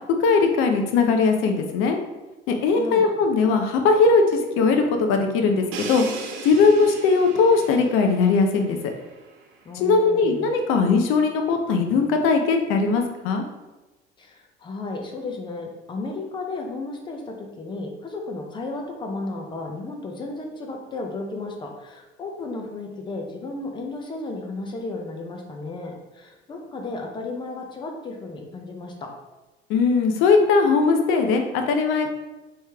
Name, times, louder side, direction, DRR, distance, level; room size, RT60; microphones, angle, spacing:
voice 1, 0.2-2.0 2.5-6.0 6.4-8.9 9.8-13.4 29.7-32.1, left 4 dB, 75° left, 5 dB, 0.7 m, -19 dB
voice 2, 2.8-3.1 9.6-10.5 14.2-29.1, left 3 dB, 20° left, 2 dB, 0.6 m, -34 dB
Crash cymbal, 5.7-9.5, right 4 dB, 70° right, 0.7 m, -37 dB
4.6 x 3.2 x 3.4 m, 1.1 s
cardioid pair, 175°, 21 cm